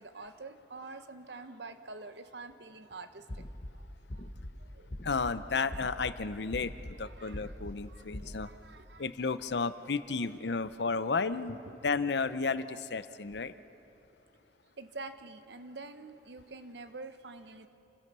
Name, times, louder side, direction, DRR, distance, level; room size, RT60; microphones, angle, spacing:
voice 1, 0.0-3.4 3.7-4.9 7.0-9.1 10.1-10.3 11.7-11.8 14.8-17.7, right 3 dB, 70° right, 9 dB, 1.0 m, -47 dB
sound 1, 3.3-3.7 4.1-4.5 4.9-5.3 5.7-6.1 6.5-6.9 7.3-7.7 8.1-8.3, left 1 dB, 45° left, 1.1 m, -41 dB
voice 2, 5.0-8.5 9.0-11.6 11.8-13.5, left 4 dB, 70° left, 13 dB, 0.7 m, -33 dB
28.5 x 16.5 x 6.8 m, 2.9 s
head